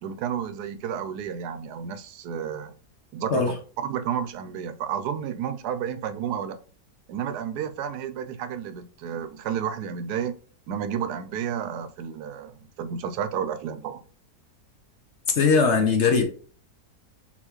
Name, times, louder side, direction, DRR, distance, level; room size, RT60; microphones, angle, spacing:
voice 1, 0.0-2.7 3.1-3.6 3.8-6.6 7.1-10.3 10.7-14.0, right 8 dB, 85° right, 1.2 m, -31 dB
voice 2, 15.3-16.2, left 5 dB, 55° left, 0.9 m, -20 dB
4.2 x 3.8 x 3.1 m
omnidirectional pair, 1.7 m